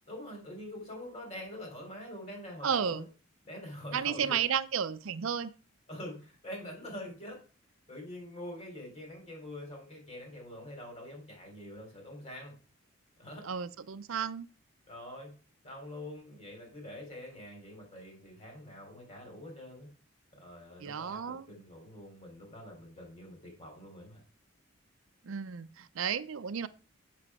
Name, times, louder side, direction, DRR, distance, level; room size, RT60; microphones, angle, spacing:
voice 1, 0.1-3.1 3.4-4.4 5.9-7.4 7.9-12.5 13.2-13.4 14.9-15.3 15.6-19.9 20.3-24.2, left 1 dB, 30° left, 3.4 m, -45 dB
voice 2, 2.6-3.1 3.9-5.5 13.4-14.5 20.8-21.5 25.2-26.7, right 7 dB, 70° right, 0.5 m, -33 dB
7.5 x 7.0 x 4.8 m
head